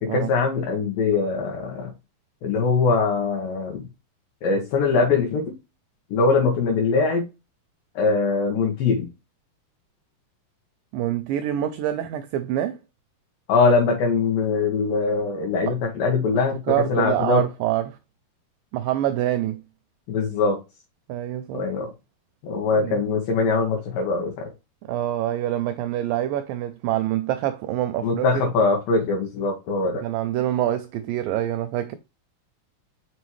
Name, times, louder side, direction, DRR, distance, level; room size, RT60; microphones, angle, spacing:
voice 1, 0.0-1.9 2.4-3.9 4.4-5.6 6.1-7.3 8.0-9.1 13.5-17.4 20.1-20.6 21.5-21.9 22.4-24.5 28.0-30.1, left 4 dB, 70° left, 2.9 m, -22 dB
voice 2, 10.9-12.8 15.7-15.8 16.7-18.0 18.7-19.6 21.1-21.7 22.8-23.0 24.8-28.5 30.0-32.0, right 12 dB, 80° right, 2.2 m, -26 dB
5.9 x 5.3 x 3.1 m
omnidirectional pair, 4.3 m